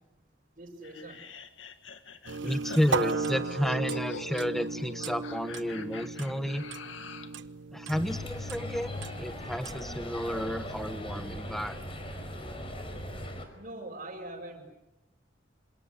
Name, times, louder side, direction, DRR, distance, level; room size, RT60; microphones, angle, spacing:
voice 1, 0.5-1.2 13.5-14.7, right 1 dB, 40° right, -4 dB, 6.2 m, -42 dB
sound 1, 0.8-7.4, left 5 dB, 85° left, 2.1 m, -46 dB
sound 2, 2.3-9.8, right 4 dB, 70° right, 1.0 m, -36 dB
voice 2, 2.4-6.6 7.7-11.8, equal, ahead, 9 dB, 1.3 m, -31 dB
sound 3, 7.9-13.5, left 1 dB, 30° left, 5.0 m, -39 dB
27.5 x 26.0 x 8.2 m, 0.94 s
head